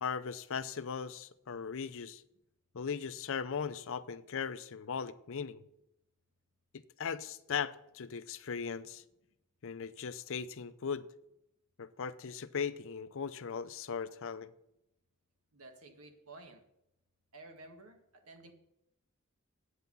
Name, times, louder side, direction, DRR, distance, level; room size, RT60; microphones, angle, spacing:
voice 1, 0.0-2.2 2.7-5.6 6.7-9.0 9.6-11.1 11.8-14.5, left 6 dB, 65° left, 0.6 m, -38 dB
voice 2, 15.5-16.6 17.3-18.5, right 2 dB, 80° right, 1.8 m, -53 dB
9.2 x 8.1 x 5.4 m
head